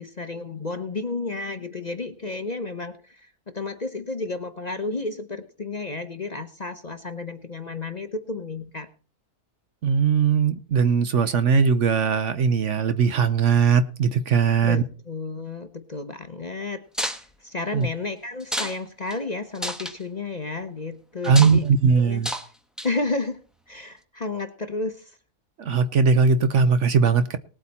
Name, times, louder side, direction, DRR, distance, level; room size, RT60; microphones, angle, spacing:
voice 1, 0.0-8.9 14.6-16.8 17.4-22.2 22.8-23.4 23.7-25.2, left 3 dB, 35° left, 8 dB, 0.9 m, -32 dB
voice 2, 9.8-14.8 17.7-17.9 21.2-22.3 25.6-27.4, right 5 dB, 60° right, 12 dB, 1.0 m, -19 dB
sound 1, 16.9-17.2 18.4-18.8 19.1-19.2 19.6-20.0 21.2-21.6 22.2-22.5 22.8-23.1, equal, ahead, 1.0 m, -30 dB
19.0 x 8.3 x 4.2 m, 0.38 s
omnidirectional pair, 1.6 m